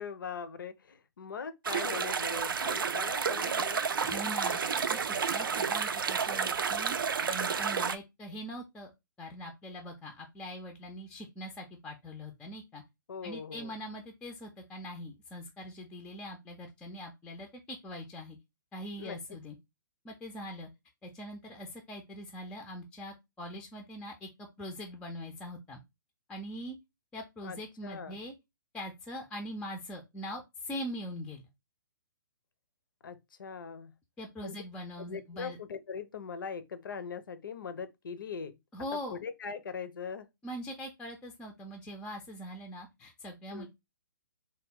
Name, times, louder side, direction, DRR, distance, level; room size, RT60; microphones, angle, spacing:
voice 1, 0.0-3.9 13.1-13.7 19.0-19.2 27.4-27.6 27.8-28.2 33.0-33.9 34.4-34.6 35.0-38.6 39.1-40.3 43.5-43.7, left 6 dB, 70° left, 0.5 m, -41 dB
sound 1, 1.6-8.0, right 6 dB, 75° right, 0.4 m, -31 dB
voice 2, 4.0-7.0 7.3-8.9 9.2-12.8 13.2-18.4 18.7-19.6 20.0-20.7 21.0-25.8 26.3-26.8 27.1-28.3 28.7-31.5 34.2-35.6 38.7-39.2 40.4-43.7, equal, 10° left, 0.4 m, -42 dB
3.4 x 2.2 x 3.5 m
figure-of-eight pair, 130°, 11 cm